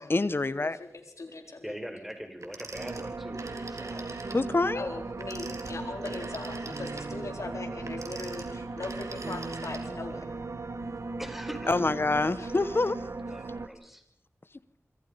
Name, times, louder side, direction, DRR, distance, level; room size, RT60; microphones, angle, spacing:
voice 1, 0.1-0.8 4.3-4.9 11.7-13.0, left 3 dB, 50° left, 16 dB, 1.1 m, -26 dB
voice 2, 0.6-1.8 4.7-10.2 12.4-12.5, left 3 dB, 85° left, 4 dB, 4.4 m, -40 dB
voice 3, 1.6-4.2 11.2-11.8 13.3-14.0, equal, 5° right, 7 dB, 4.8 m, -41 dB
Telephone, 2.4-4.5 5.1-10.2, right 3 dB, 90° right, 3.5 m, -44 dB
sound 1, 2.7-13.7, right 3 dB, 70° right, 1.5 m, -38 dB
26.5 x 25.5 x 5.3 m, 0.68 s
wide cardioid pair, 65°, 5 cm